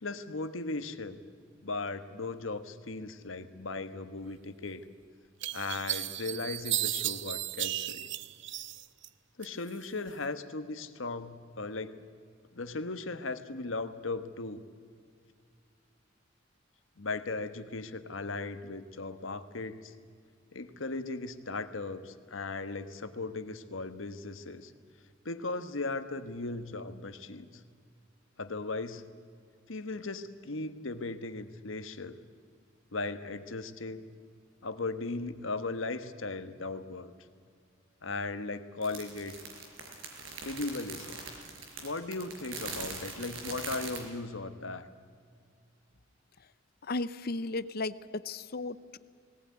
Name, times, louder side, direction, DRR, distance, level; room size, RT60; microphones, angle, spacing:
voice 1, 0.0-1.2 1.6-4.8 5.5-8.1 9.4-12.0 12.5-14.7 17.0-19.9 20.5-24.7 25.2-27.5 28.4-29.0 29.7-32.2 32.9-34.0 34.6-37.1 38.0-39.3 40.4-41.2 41.8-44.9, left 3 dB, 80° left, 10 dB, 1.3 m, -37 dB
sound 1, 4.7-4.8 5.4-9.1 9.4-10.2, right 14 dB, 65° right, 0.7 m, -34 dB
sound 2, 38.8-44.0, right 4 dB, 85° right, 4.9 m, -41 dB
voice 2, 46.9-49.0, left 2 dB, 50° left, 15 dB, 0.7 m, -35 dB
19.5 x 18.5 x 9.5 m, 2.1 s
head